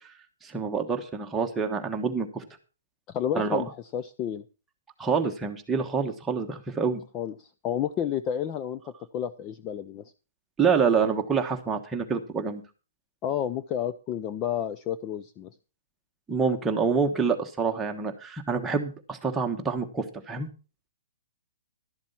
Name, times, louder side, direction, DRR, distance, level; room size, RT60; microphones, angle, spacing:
voice 1, 0.4-2.4 3.3-3.6 5.0-7.0 10.6-12.6 16.3-20.5, right 5 dB, 10° right, 3 dB, 1.2 m, -27 dB
voice 2, 3.1-4.4 7.1-8.8 9.1-10.0 13.2-15.5, left 9 dB, 20° left, 11 dB, 0.5 m, -30 dB
12.5 x 7.3 x 5.7 m, 0.34 s
hypercardioid pair, 165°, 0 cm